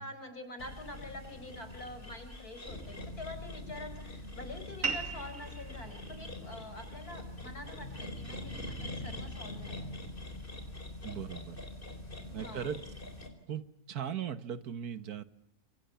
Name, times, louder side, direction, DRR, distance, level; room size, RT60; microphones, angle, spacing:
voice 1, 0.0-9.9 12.2-12.7, left 1 dB, 85° left, 9 dB, 5.5 m, -46 dB
sound 1, 0.6-13.3, left 1 dB, 35° left, 4.6 m, -44 dB
sound 2, 4.8-9.9, right 5 dB, 60° right, 3.4 m, -42 dB
voice 2, 11.0-11.6 12.3-12.8 13.5-13.6 13.9-15.2, right 8 dB, 85° right, 13 dB, 1.8 m, -38 dB
28.0 x 26.5 x 7.0 m, 0.76 s
omnidirectional pair, 1.6 m